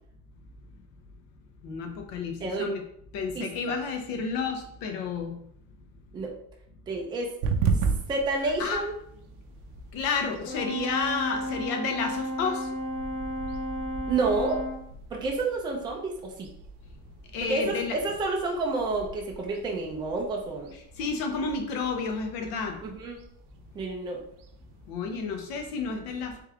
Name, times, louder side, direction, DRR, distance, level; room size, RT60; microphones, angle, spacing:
voice 1, 1.6-2.8 3.1-5.4 8.6-8.8 9.9-12.7 17.3-17.9 21.0-22.8 24.9-26.4, left 5 dB, 65° left, 4 dB, 0.9 m, -31 dB
voice 2, 6.9-7.3 8.1-9.0 14.1-14.6 15.1-16.5 17.5-20.7 22.8-23.2 23.7-24.2, right 3 dB, 15° right, 0 dB, 0.4 m, -29 dB
sound 1, 7.4-25.3, right 5 dB, 60° right, 0.6 m, -37 dB
Brass instrument, 10.4-14.8, equal, 40° left, 1.4 m, -33 dB
3.5 x 3.2 x 3.5 m, 0.71 s
cardioid pair, 175°, 37 cm